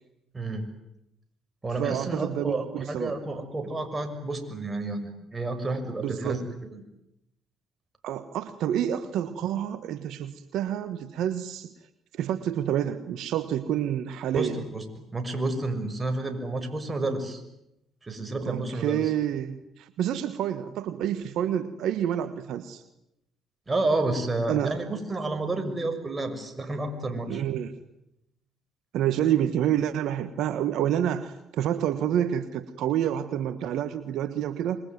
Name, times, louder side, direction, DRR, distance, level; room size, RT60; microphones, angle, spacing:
voice 1, 0.3-0.7 1.6-6.4 6.7-6.8 14.3-17.4 18.0-19.0 23.7-27.4, right 2 dB, 25° right, 7 dB, 6.4 m, -30 dB
voice 2, 1.8-3.1 6.0-6.4 8.0-11.7 12.1-14.6 18.4-22.8 24.5-24.8 27.3-27.7 28.9-34.8, right 10 dB, 75° right, 12 dB, 1.4 m, -28 dB
26.0 x 23.0 x 9.5 m, 0.84 s
supercardioid pair, 60°, 0 cm